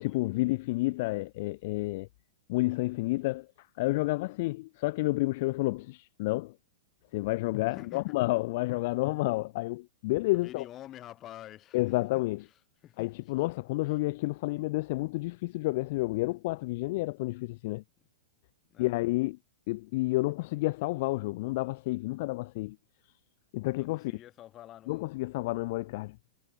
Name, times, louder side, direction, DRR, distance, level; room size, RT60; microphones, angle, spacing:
voice 1, 0.0-2.1 2.5-6.5 7.1-10.6 11.7-12.4 13.0-17.8 18.8-19.4 19.7-22.8 23.5-24.1 24.9-26.2, left 21 dB, 50° left, 0.8 m, -30 dB
voice 2, 7.7-8.2 10.3-12.1 12.4-13.4 13.9-14.0 18.7-19.1 23.7-25.1, left 13 dB, 25° left, 2.9 m, -49 dB
hypercardioid pair, 150°, 0 cm